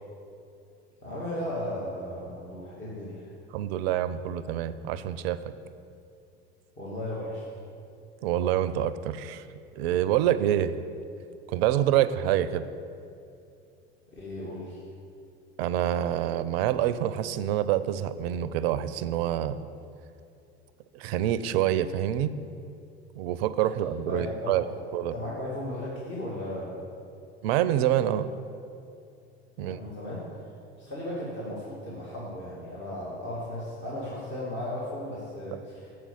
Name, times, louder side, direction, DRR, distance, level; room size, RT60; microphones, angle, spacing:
voice 1, 1.0-3.3 6.8-7.4 14.1-14.8 24.1-24.7 25.1-26.7 29.6-30.2 30.8-36.0, left 1 dB, 35° left, -6 dB, 2.0 m, -36 dB
voice 2, 3.5-5.4 8.2-9.5 9.7-10.8 11.5-12.7 15.6-19.6 20.9-22.3 23.1-24.6 24.9-25.1 27.4-28.3 29.6-29.8, right 11 dB, 65° right, 14 dB, 0.5 m, -26 dB
7.4 x 4.6 x 6.9 m, 2.6 s
hypercardioid pair, 75°, 33 cm